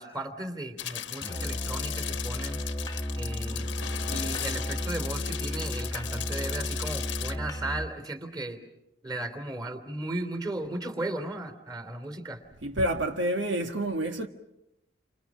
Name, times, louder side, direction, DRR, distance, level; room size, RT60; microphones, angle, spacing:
voice 1, 0.0-2.6 3.1-3.7 4.1-8.6 9.0-12.4, right 1 dB, 20° right, 3.2 m, -36 dB
sound 1, 0.8-7.4, left 11 dB, 85° left, 1.2 m, -37 dB
Musical instrument, 1.2-8.0, equal, 20° left, 1.0 m, -34 dB
voice 2, 12.6-14.3, right 1 dB, 85° right, 1.7 m, -28 dB
29.5 x 26.5 x 6.2 m
head